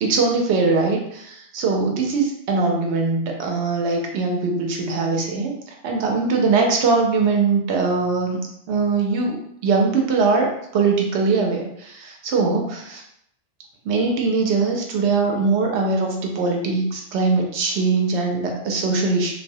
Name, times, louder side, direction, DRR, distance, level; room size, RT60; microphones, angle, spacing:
voice 1, 0.0-8.4 8.7-9.4 9.6-10.5 10.7-13.0 13.8-19.3, right 4 dB, 70° right, 1 dB, 0.8 m, -21 dB
2.3 x 2.0 x 2.6 m, 0.73 s
omnidirectional pair, 1.3 m